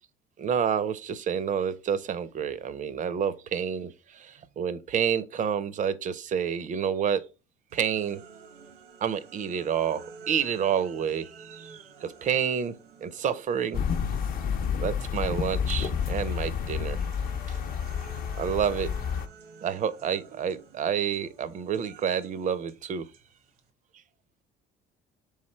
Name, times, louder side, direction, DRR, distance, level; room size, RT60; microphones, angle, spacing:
voice 1, 0.4-7.3 7.7-8.2 9.0-12.8 13.0-13.8 14.8-17.0 17.5-17.6 18.4-18.9 19.6-23.1, right 8 dB, 40° right, 0.4 m, -29 dB
sound 1, 7.7-14.8 15.1-23.7, right 5 dB, 90° right, 0.9 m, -51 dB
sound 2, 13.7-19.3, left 7 dB, 50° left, 0.6 m, -30 dB
3.4 x 3.2 x 4.3 m
cardioid pair, 95°, 19 cm